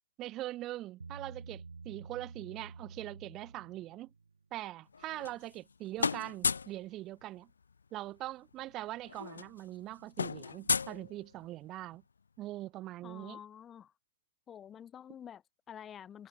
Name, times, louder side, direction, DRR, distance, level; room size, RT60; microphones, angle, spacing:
voice 1, 0.2-4.1 4.5-7.5 7.9-12.0 12.4-13.4, right 15 dB, 25° right, 0.3 m, -42 dB
Bass guitar, 1.0-4.4, right 4 dB, 80° right, 0.7 m, -49 dB
sound 1, 4.9-5.7 6.0-6.8 8.2-8.3 8.5-8.7 9.0-11.6, left 5 dB, 75° left, 0.3 m, -34 dB
voice 2, 13.0-13.9 14.5-16.3, left 9 dB, 20° left, 0.7 m, -49 dB
figure-of-eight pair, 120°, 0 cm